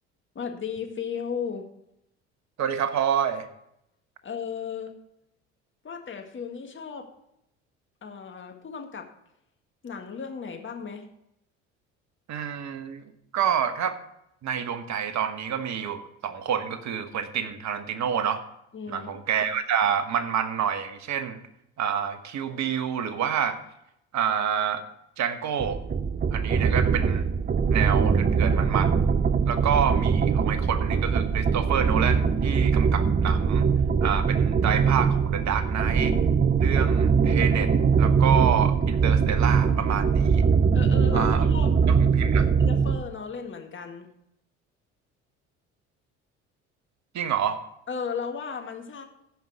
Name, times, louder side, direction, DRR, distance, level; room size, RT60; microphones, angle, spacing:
voice 1, 0.4-1.6 4.2-4.9 5.8-7.1 8.0-9.1 9.8-11.0 18.7-19.1 40.7-41.7 42.6-44.1 47.9-49.0, left 6 dB, 35° left, 4 dB, 1.9 m, -35 dB
voice 2, 2.6-3.5 12.3-13.0 13.3-14.0 14.4-18.4 18.9-21.4 21.8-23.6 24.1-24.8 25.2-25.8 26.3-27.3 27.7-29.0 29.4-33.7 34.0-36.1 36.6-40.4 41.1-41.4 41.9-42.5 47.1-47.6, right 8 dB, 50° right, 10 dB, 1.2 m, -28 dB
sound 1, 25.6-43.0, right 6 dB, 25° right, 0.7 m, -22 dB
15.5 x 5.6 x 4.8 m, 0.80 s
hypercardioid pair, 60°, 35 cm